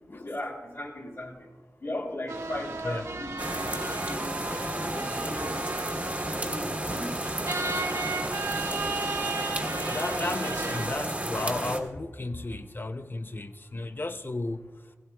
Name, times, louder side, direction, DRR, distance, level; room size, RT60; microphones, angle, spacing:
voice 1, 0.2-1.3 1.8-5.9 6.3-7.2, left 1 dB, 55° left, 2.9 m, -38 dB
sound 1, 2.3-10.9, right 3 dB, 75° right, 1.3 m, -35 dB
sound 2, 3.4-11.8, right 1 dB, 25° right, 1.5 m, -32 dB
voice 2, 9.6-14.7, left 2 dB, 40° left, 0.6 m, -34 dB
17.0 x 16.5 x 2.3 m
wide cardioid pair, 75°, 5 cm